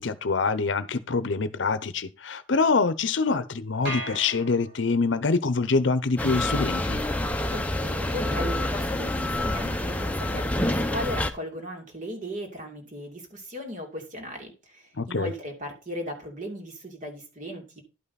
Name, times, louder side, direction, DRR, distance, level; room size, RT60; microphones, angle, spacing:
voice 1, 0.0-7.0 15.0-15.3, left 4 dB, 65° left, 0.7 m, -25 dB
sound 1, 3.9-5.2, equal, 60° right, 4.4 m, -36 dB
sound 2, 6.2-11.3, left 1 dB, 10° left, 0.7 m, -27 dB
voice 2, 7.4-17.8, equal, 45° right, 2.7 m, -37 dB
11.5 x 5.6 x 4.1 m
head